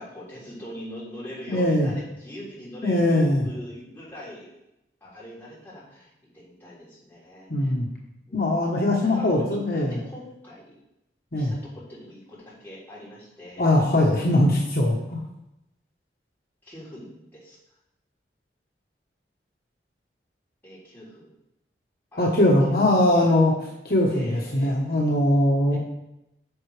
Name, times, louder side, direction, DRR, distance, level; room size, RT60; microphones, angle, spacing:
voice 1, 0.0-4.6 5.0-7.7 8.3-8.7 9.0-9.6 9.9-10.7 11.3-13.7 16.6-17.6 20.6-21.3 22.1-23.5 24.1-24.8 25.7-25.8, equal, 10° left, -9 dB, 3.4 m, -42 dB
voice 2, 1.5-1.9 2.8-3.5 7.5-7.9 8.3-10.0 11.3-11.5 13.6-15.2 22.2-25.8, left 1 dB, 55° left, -2 dB, 1.1 m, -21 dB
9.5 x 6.8 x 3.3 m, 0.87 s
head